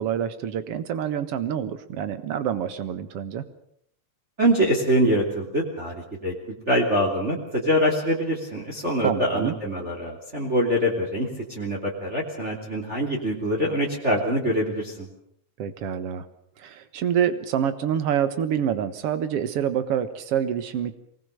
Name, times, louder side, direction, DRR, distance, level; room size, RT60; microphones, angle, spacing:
voice 1, 0.0-3.4 9.0-9.5 15.6-16.3 16.6-20.9, right 9 dB, 55° right, 11 dB, 2.1 m, -26 dB
voice 2, 4.4-6.3 6.7-15.1, equal, 20° right, -1 dB, 3.1 m, -24 dB
23.5 x 19.5 x 6.7 m, 0.70 s
omnidirectional pair, 3.5 m